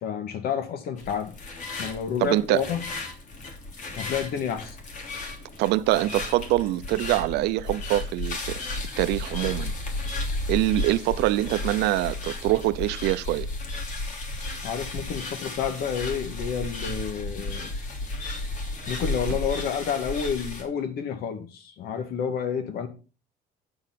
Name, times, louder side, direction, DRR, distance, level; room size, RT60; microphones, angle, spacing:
voice 1, 0.0-1.3 1.8-2.8 4.0-4.8 14.6-17.7 18.9-22.9, left 7 dB, 65° left, 2.1 m, -30 dB
sound 1, 1.0-20.6, left 2 dB, 50° left, 3.0 m, -34 dB
voice 2, 2.2-2.6 5.6-8.7 9.0-9.7 10.5-13.5, right 16 dB, 80° right, 0.7 m, -24 dB
8.7 x 7.2 x 5.8 m
cardioid pair, 140°, 17 cm